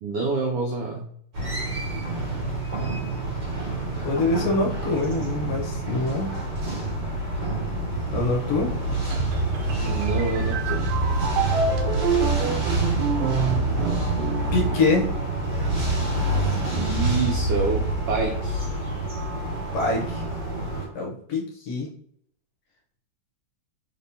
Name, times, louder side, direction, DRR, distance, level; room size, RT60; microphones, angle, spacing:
voice 1, 0.0-1.1 9.8-11.0 16.7-18.7, right 3 dB, 90° right, 0 dB, 1.2 m, -27 dB
sound 1, 1.3-20.9, right 2 dB, 40° right, 2.0 m, -27 dB
voice 2, 4.0-6.3 8.1-8.7 14.5-15.1 19.7-20.2 21.0-21.9, left 3 dB, 70° left, -1 dB, 1.7 m, -25 dB
sound 2, 9.1-15.8, right 5 dB, 75° right, 1.5 m, -28 dB
4.3 x 3.5 x 2.7 m, 0.66 s
omnidirectional pair, 3.3 m